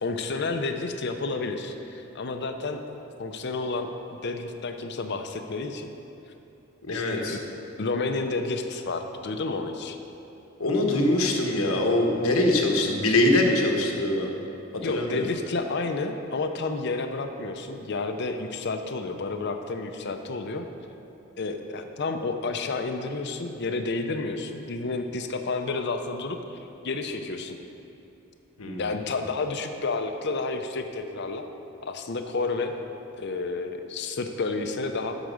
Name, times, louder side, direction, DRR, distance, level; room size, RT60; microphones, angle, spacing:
voice 1, 0.0-2.8 3.2-5.9 6.9-7.4 7.8-10.0 14.8-20.6 21.4-26.6 26.8-27.6 28.8-31.4 31.8-32.8 33.2-35.2, left 3 dB, 55° left, 6 dB, 0.6 m, -30 dB
voice 2, 6.8-7.4 10.6-14.3 14.9-15.3 28.6-28.8, left 1 dB, 75° left, 2 dB, 1.1 m, -23 dB
10.5 x 4.9 x 6.3 m, 3.0 s
head